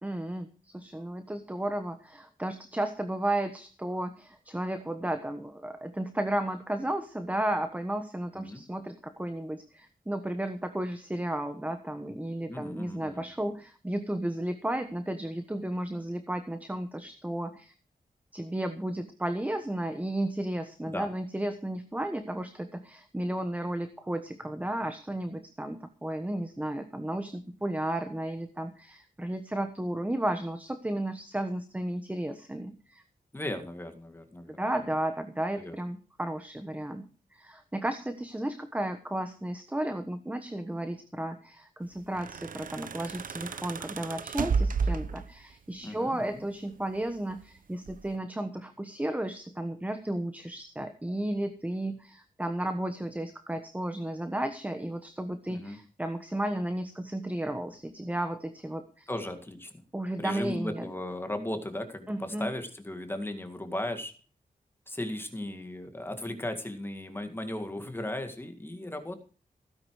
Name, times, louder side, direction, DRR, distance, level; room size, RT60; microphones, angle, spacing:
voice 1, 0.0-17.7 18.3-33.0 34.6-37.1 37.3-59.1 59.9-60.9 62.1-62.5, right 1 dB, 10° right, 8 dB, 1.2 m, -33 dB
voice 2, 12.5-13.2 20.9-21.1 33.3-34.6 35.5-35.8 45.8-46.4 55.5-55.8 59.1-59.7 60.2-64.1 64.9-69.2, left 1 dB, 15° left, 6 dB, 2.0 m, -36 dB
sound 1, 42.0-45.5 46.7-47.4 47.9-48.2, right 5 dB, 65° right, 0.9 m, -32 dB
16.5 x 9.8 x 4.8 m, 0.38 s
wide cardioid pair, 155°, 15 cm